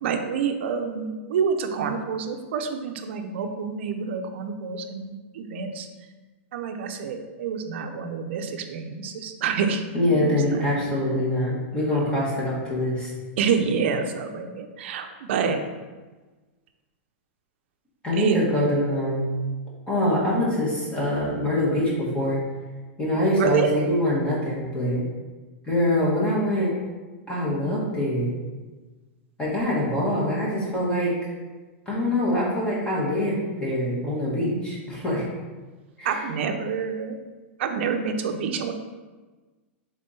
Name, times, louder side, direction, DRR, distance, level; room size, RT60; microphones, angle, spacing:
voice 1, 0.0-5.9 6.5-9.8 10.2-10.4 11.9-12.0 13.4-15.6 18.1-18.4 23.4-23.7 36.0-37.2 37.6-38.7, right 6 dB, 65° right, 6 dB, 0.5 m, -27 dB
voice 2, 9.9-13.1 18.0-19.4 19.9-22.4 23.0-25.0 25.7-26.7 27.3-28.3 29.4-31.1 31.9-35.3 36.0-36.2, left 1 dB, 15° left, -6 dB, 1.2 m, -24 dB
3.6 x 3.6 x 4.0 m, 1.3 s
supercardioid pair, 150°, 7 cm